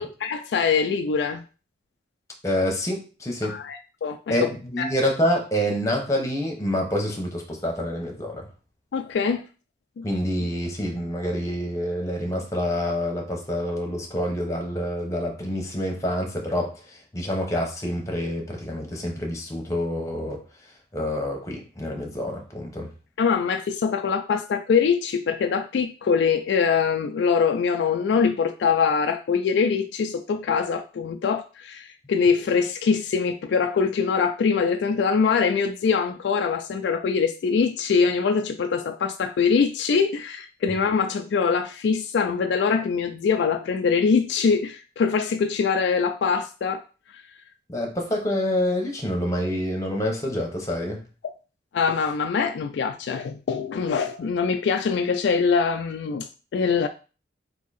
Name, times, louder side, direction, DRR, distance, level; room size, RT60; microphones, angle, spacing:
voice 1, 0.0-1.4 3.4-4.5 4.8-4.9 8.9-9.4 10.0-10.1 23.2-46.8 51.7-56.9, left 5 dB, 65° left, 0.3 m, -23 dB
voice 2, 2.4-3.6 4.3-8.4 10.0-16.7 17.1-20.4 20.9-22.9 47.7-51.0, equal, 15° left, 0.9 m, -27 dB
3.5 x 2.7 x 4.0 m
head